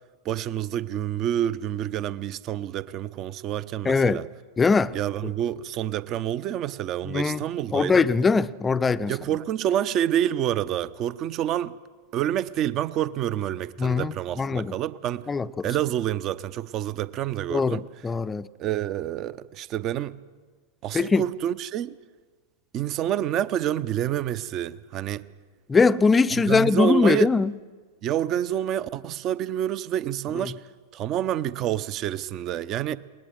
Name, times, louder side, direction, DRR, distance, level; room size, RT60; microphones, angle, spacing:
voice 1, 0.2-4.3 4.9-8.1 9.1-11.8 12.1-15.3 15.6-17.8 18.6-20.2 20.8-21.9 22.7-25.2 26.3-27.3 28.0-30.6 30.9-33.0, right 11 dB, 35° right, 0.7 m, -28 dB
voice 2, 3.8-4.2 4.6-5.0 7.1-7.4 7.7-9.1 13.8-14.7 15.3-15.7 17.5-18.5 20.9-21.2 25.7-27.5 30.4-30.5, left 4 dB, 15° left, 0.5 m, -21 dB
21.5 x 19.5 x 7.8 m
figure-of-eight pair, 90°, 0 cm